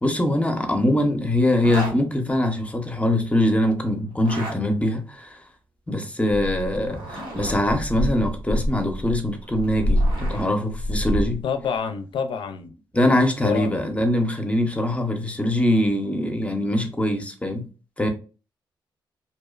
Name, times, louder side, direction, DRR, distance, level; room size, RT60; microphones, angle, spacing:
voice 1, 0.0-5.4 5.9-11.4 12.9-17.7 18.0-18.1, left 1 dB, 15° left, 0.5 m, -23 dB
Zipper (clothing), 1.5-2.0 4.1-4.6 6.7-7.6 9.4-10.5, right 1 dB, 90° right, 0.9 m, -34 dB
sound 1, 6.3-6.9 7.3-11.4, equal, 75° right, 0.4 m, -26 dB
voice 2, 11.4-12.7 13.4-13.8, left 6 dB, 70° left, 0.4 m, -27 dB
2.6 x 2.1 x 2.3 m
cardioid pair, 80°, 9 cm